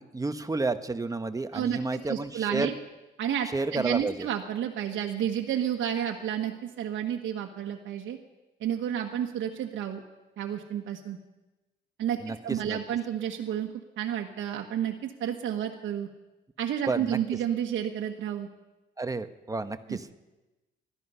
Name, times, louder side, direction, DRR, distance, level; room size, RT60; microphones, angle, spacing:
voice 1, 0.0-2.7 3.5-4.3 12.2-12.4 12.7-12.8 16.9-17.2 19.0-20.1, right 3 dB, 15° right, 10 dB, 1.0 m, -30 dB
voice 2, 1.5-2.7 3.2-8.2 8.6-10.0 10.4-11.2 12.0-16.1 16.6-18.5 19.9-20.0, right 10 dB, 75° right, 2 dB, 1.4 m, -31 dB
19.5 x 13.0 x 5.6 m, 1.1 s
cardioid pair, 90°, 20 cm